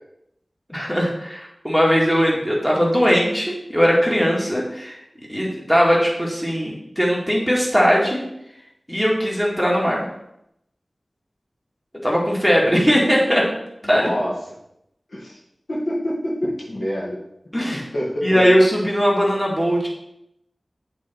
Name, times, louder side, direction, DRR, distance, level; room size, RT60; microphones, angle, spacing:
voice 1, 0.7-5.0 5.3-8.2 8.9-10.1 12.0-13.5 13.9-14.1 17.5-17.8 18.2-19.9, equal, 5° left, -3 dB, 2.0 m, -19 dB
voice 2, 13.8-14.4 15.1-15.4 15.7-17.2 17.7-18.5, equal, 90° left, -6 dB, 2.1 m, -26 dB
8.1 x 4.0 x 4.4 m, 0.82 s
wide cardioid pair, 50°, 0 cm